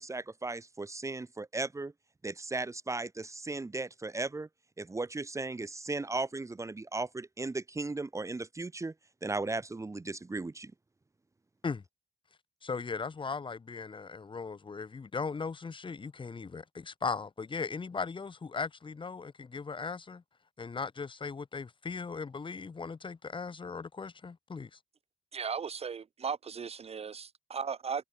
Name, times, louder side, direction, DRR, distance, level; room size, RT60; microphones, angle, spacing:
voice 1, 0.0-1.9 2.2-4.5 4.8-8.9 9.2-10.7, right 3 dB, 20° right, 1.7 m, -36 dB
voice 2, 12.6-20.2 20.6-24.8, left 4 dB, 35° left, 2.8 m, -38 dB
voice 3, 25.3-28.0, right 6 dB, 40° right, 1.1 m, -36 dB
cardioid pair, 115°, 15 cm